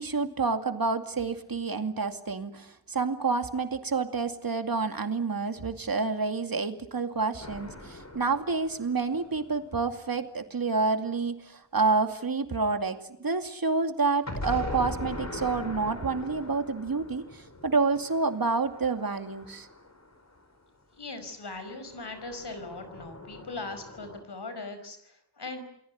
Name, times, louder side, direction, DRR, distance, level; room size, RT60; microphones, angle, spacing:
voice 1, 0.0-19.7, right 4 dB, 60° right, 7 dB, 2.5 m, -28 dB
sound 1, 7.4-10.2 14.3-20.5 21.8-24.2, left 2 dB, 40° left, 4.7 m, -41 dB
voice 2, 20.9-25.6, left 3 dB, 80° left, 9 dB, 5.3 m, -40 dB
29.0 x 19.5 x 9.5 m, 0.78 s
wide cardioid pair, 65°, 40 cm